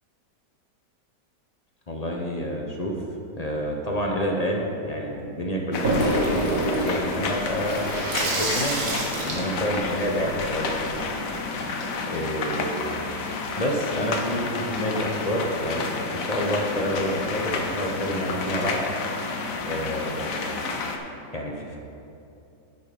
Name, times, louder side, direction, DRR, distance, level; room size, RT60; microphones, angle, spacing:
voice 1, 1.9-3.0 3.3-7.9 8.1-8.8 9.2-10.7 12.1-12.9 13.5-18.8 19.6-20.3 21.3-21.8, equal, 40° left, 0 dB, 0.6 m, -28 dB
sound 1, 5.7-21.0, left 4 dB, 60° left, 1.1 m, -30 dB
Water tap faucet / Sink (filling or washing), 5.8-11.0, right 1 dB, 60° right, 2.0 m, -28 dB
11.0 x 6.7 x 5.2 m, 2.7 s
omnidirectional pair, 1.9 m